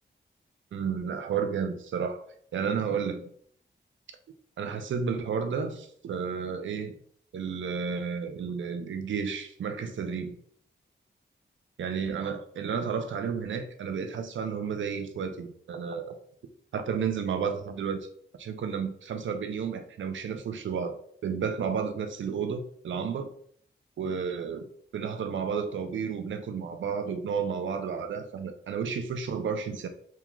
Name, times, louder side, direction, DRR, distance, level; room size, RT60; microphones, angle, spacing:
voice 1, 0.7-2.2 2.5-3.3 4.6-6.9 7.3-10.4 11.8-16.1 16.7-18.1 18.4-20.9 21.2-23.3 24.0-24.7 24.9-29.9, right 6 dB, 85° right, 7 dB, 0.4 m, -32 dB
3.6 x 2.3 x 2.9 m, 0.62 s
cardioid pair, 65°, 19 cm